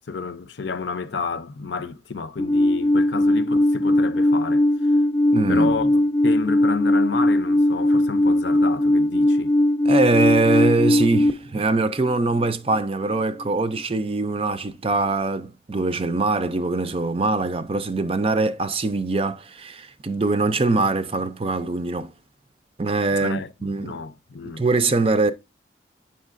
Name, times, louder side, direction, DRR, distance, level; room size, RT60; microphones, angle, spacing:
voice 1, 0.1-4.7 5.5-9.5 23.1-24.6, left 5 dB, 75° left, 0.6 m, -31 dB
Alarm, 2.4-11.3, left 1 dB, 20° left, 0.6 m, -19 dB
voice 2, 5.3-5.9 9.8-22.1 22.8-24.0 24.4-25.3, right 3 dB, 30° right, 0.5 m, -23 dB
8.1 x 5.7 x 2.5 m
head